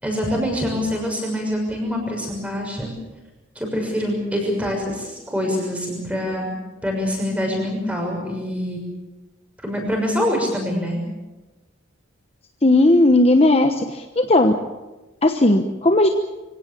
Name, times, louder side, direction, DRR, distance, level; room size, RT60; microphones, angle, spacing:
voice 1, 0.0-2.9 3.5-6.5 6.8-8.8 9.6-11.0, equal, 5° right, 1 dB, 6.4 m, -25 dB
voice 2, 12.6-14.5 15.2-16.1, left 2 dB, 30° left, 5 dB, 1.1 m, -16 dB
24.5 x 17.5 x 8.5 m, 1.1 s
head